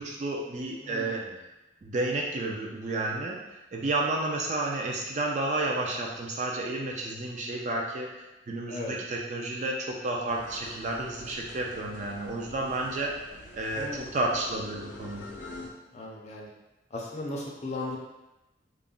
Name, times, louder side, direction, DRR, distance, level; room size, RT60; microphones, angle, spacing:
voice 1, 0.0-1.2 1.8-3.4 3.7-13.2 13.5-13.9 14.1-15.2, right 2 dB, 40° right, -1 dB, 0.3 m, -31 dB
voice 2, 0.8-1.4 8.7-8.9 13.8-14.2 15.9-16.5 16.9-18.0, left 2 dB, 35° left, -2 dB, 0.4 m, -37 dB
sound 1, 10.3-15.7, left 2 dB, 85° left, 0.6 m, -46 dB
2.4 x 2.0 x 3.6 m, 0.99 s
head